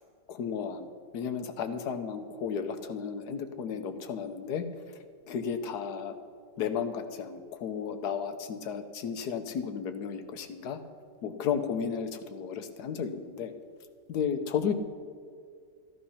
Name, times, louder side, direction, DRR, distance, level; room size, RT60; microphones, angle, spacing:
voice 1, 0.3-0.9 1.1-4.6 5.3-6.2 6.6-10.8 11.2-13.5 14.1-14.7, left 7 dB, 70° left, 8 dB, 1.4 m, -33 dB
14.0 x 11.0 x 5.7 m, 2.2 s
omnidirectional pair, 1.8 m